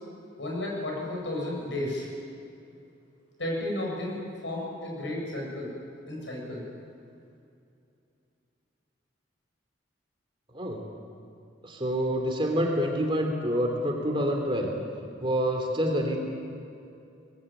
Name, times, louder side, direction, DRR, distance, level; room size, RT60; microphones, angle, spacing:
voice 1, 0.4-2.1 3.4-4.2 4.4-5.7 6.1-6.6, left 1 dB, 70° left, -1 dB, 7.5 m, -32 dB
voice 2, 11.6-14.7 15.2-16.2, equal, 25° right, 2 dB, 3.1 m, -27 dB
22.5 x 20.5 x 9.1 m, 2.6 s
head